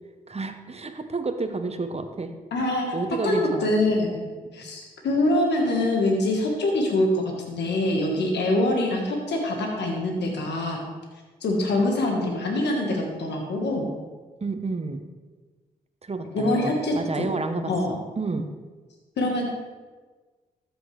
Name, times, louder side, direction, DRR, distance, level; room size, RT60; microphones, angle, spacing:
voice 1, 0.3-2.3 2.9-3.7 14.4-15.0 16.0-18.5, right 3 dB, 35° right, 8 dB, 1.0 m, -30 dB
voice 2, 2.5-2.9 3.2-4.2 4.5-10.8 11.4-13.9 16.3-17.3 17.7-17.9 19.2-19.5, left 1 dB, 75° left, 0 dB, 1.5 m, -24 dB
13.5 x 6.3 x 3.3 m, 1.3 s
supercardioid pair, 45°, 18 cm